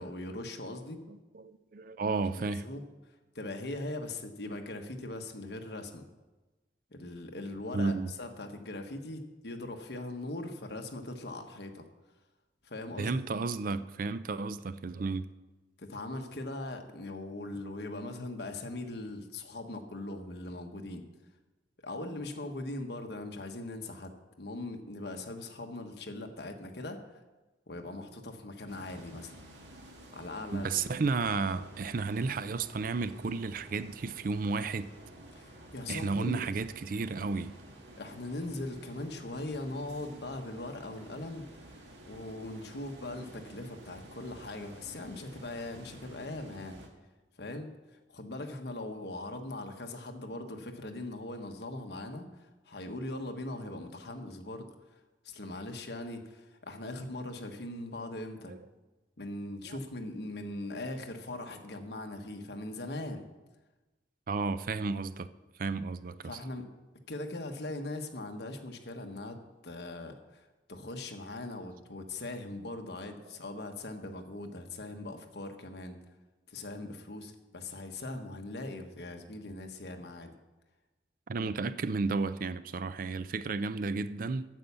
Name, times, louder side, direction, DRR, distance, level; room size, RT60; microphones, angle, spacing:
voice 1, 0.0-1.0 2.3-2.8 3.3-6.1 6.9-11.8 12.6-13.1 15.8-21.0 21.8-27.0 27.7-29.3 30.1-30.7 35.3-36.5 38.0-46.8 47.4-54.7 55.2-58.5 59.2-63.2 66.2-66.7 67.1-69.4 69.6-76.0 76.5-80.3, left 2 dB, 65° left, 5 dB, 1.2 m, -40 dB
voice 2, 1.1-2.7 7.7-8.1 13.0-15.2 30.5-34.9 35.9-37.5 58.5-58.6 59.6-59.8 64.3-65.3 65.6-66.3 81.3-84.5, right 4 dB, 50° right, 13 dB, 0.4 m, -32 dB
sound 1, 28.7-46.9, right 1 dB, 85° right, 1.8 m, -52 dB
9.2 x 8.3 x 6.8 m, 1.1 s
head